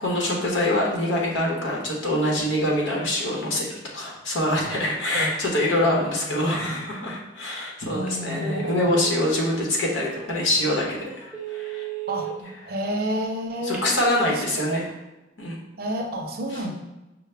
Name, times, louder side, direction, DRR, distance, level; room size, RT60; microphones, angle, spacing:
voice 1, 0.0-11.9 13.6-14.9 15.4-15.6, left 1 dB, 85° left, -2 dB, 1.0 m, -25 dB
voice 2, 5.8-6.5 7.9-9.0 12.1-12.3 12.6-13.9 14.3-14.8 15.8-16.7, right 1 dB, 55° right, 3 dB, 0.6 m, -30 dB
Telephone, 7.9-8.2 8.5-9.6 10.1-10.2 10.6-10.7 11.2-12.3 13.5-14.1, right 11 dB, 10° right, 0.7 m, -34 dB
5.4 x 2.1 x 3.3 m, 1.0 s
head